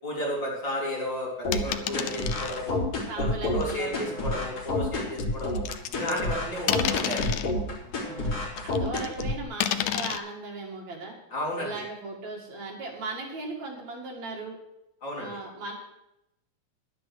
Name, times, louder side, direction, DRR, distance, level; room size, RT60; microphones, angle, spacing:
voice 1, 0.0-2.8 3.2-5.6 5.9-7.4 11.3-11.7 15.0-15.3, equal, 35° left, -5 dB, 4.4 m, -33 dB
sound 1, 1.4-9.4, left 2 dB, 55° left, 4.1 m, -29 dB
sound 2, 1.5-2.6 3.6-3.7 5.2-6.3 6.7-7.5 8.6-9.2 9.6-10.2, left 11 dB, 75° left, 2.0 m, -30 dB
voice 2, 3.1-4.1 6.2-6.7 8.1-8.3 8.6-11.2 11.6-14.6 15.2-15.7, right 3 dB, 65° right, -1 dB, 3.5 m, -38 dB
11.0 x 9.4 x 6.2 m, 0.83 s
omnidirectional pair, 3.5 m